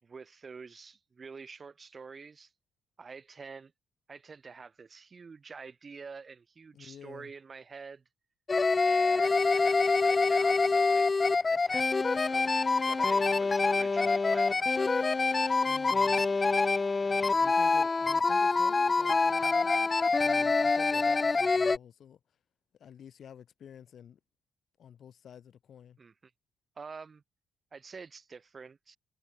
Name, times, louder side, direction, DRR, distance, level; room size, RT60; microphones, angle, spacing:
voice 1, 0.0-2.5 3.0-3.7 4.1-8.0 8.8-11.1 11.5-12.6 12.9-15.0 26.0-26.1 26.8-27.2 27.7-29.0, right 5 dB, 35° right, 7.0 m, -47 dB
voice 2, 6.7-7.3 15.7-16.2 17.0-22.2 22.8-24.2 24.8-26.0, left 8 dB, 60° left, 5.6 m, -51 dB
sound 1, 8.5-21.8, left 4 dB, 30° left, 0.4 m, -26 dB
cardioid pair, 90°, 0 cm